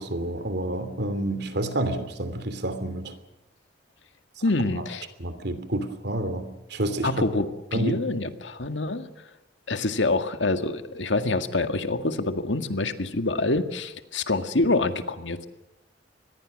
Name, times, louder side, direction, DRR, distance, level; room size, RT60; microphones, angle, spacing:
voice 1, 0.0-3.1 4.8-4.9 5.2-7.3 7.7-8.0, right 1 dB, 65° right, 11 dB, 2.9 m, -29 dB
voice 2, 4.4-5.1 7.0-9.1 9.7-15.4, left 2 dB, 85° left, 8 dB, 1.9 m, -26 dB
25.5 x 20.5 x 6.5 m, 0.94 s
head